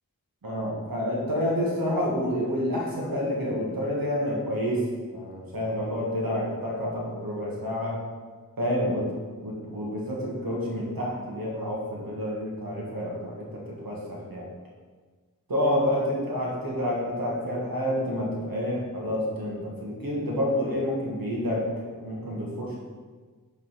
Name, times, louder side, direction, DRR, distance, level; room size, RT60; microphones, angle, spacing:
voice 1, 0.4-8.0 8.6-9.1 9.4-14.5 15.5-22.8, equal, 85° right, -4 dB, 1.5 m, -29 dB
5.7 x 3.8 x 5.6 m, 1.4 s
wide cardioid pair, 40°, 34 cm